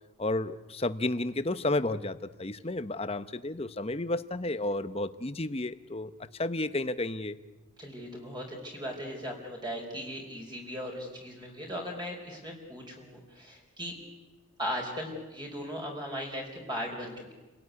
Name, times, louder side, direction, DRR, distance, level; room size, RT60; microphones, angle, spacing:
voice 1, 0.2-6.1 6.4-7.4, left 2 dB, 30° left, 12 dB, 0.9 m, -32 dB
voice 2, 7.8-14.0 14.6-17.3, equal, 20° right, 0 dB, 4.9 m, -38 dB
29.5 x 17.5 x 9.8 m, 1.2 s
head